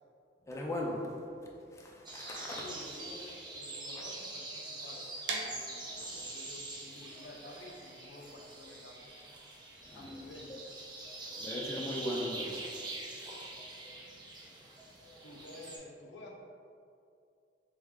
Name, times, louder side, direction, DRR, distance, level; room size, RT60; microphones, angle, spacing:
voice 1, 0.5-2.7 6.0-6.2 9.9-10.1 11.4-12.9, left 1 dB, 15° left, -2 dB, 0.4 m, -39 dB
sound 1, 2.1-15.8, right 2 dB, 25° right, 0.6 m, -44 dB
voice 2, 2.5-5.1 6.2-9.1 9.9-11.6 15.2-16.3, left 1 dB, 85° left, 0 dB, 0.6 m, -51 dB
sound 2, 5.3-11.1, right 3 dB, 80° right, 0.5 m, -44 dB
3.5 x 3.2 x 3.6 m, 2.5 s
head